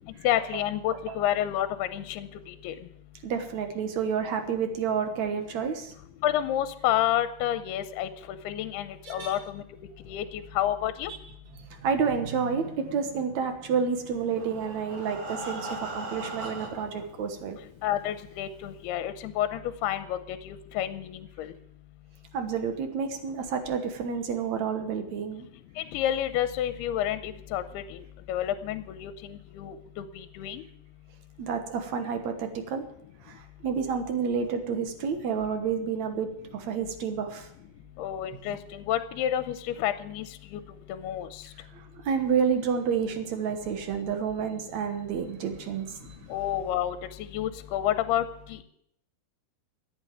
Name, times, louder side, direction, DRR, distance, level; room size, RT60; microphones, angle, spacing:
voice 1, 0.2-2.7 6.2-9.6 10.1-11.1 17.8-21.5 25.8-28.0 28.3-30.6 38.0-40.3 40.5-40.6 40.9-41.3 46.3-47.0 47.3-48.2 48.5-48.6, left 11 dB, 85° left, 11 dB, 2.7 m, -29 dB
voice 2, 3.2-5.9 9.0-9.4 11.6-17.6 22.3-25.5 31.4-32.8 33.2-37.5 41.7-46.3, right 6 dB, 60° right, 7 dB, 2.0 m, -30 dB
Breathing, 14.1-17.0 17.8-17.9 18.3-18.4 18.8-18.9, right 2 dB, 45° right, 2.9 m, -38 dB
13.5 x 8.9 x 8.8 m, 0.73 s
omnidirectional pair, 4.6 m